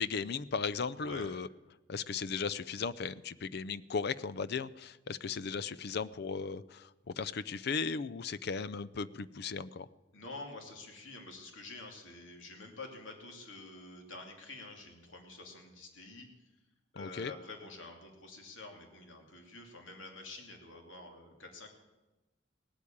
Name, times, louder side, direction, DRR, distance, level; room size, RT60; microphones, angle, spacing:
voice 1, 0.0-1.5 1.9-9.9 17.0-17.3, left 5 dB, 55° left, 17 dB, 0.5 m, -36 dB
voice 2, 1.0-1.3 10.1-16.3 16.9-21.7, left 2 dB, 85° left, 3 dB, 2.8 m, -48 dB
18.0 x 8.4 x 8.6 m, 1.1 s
head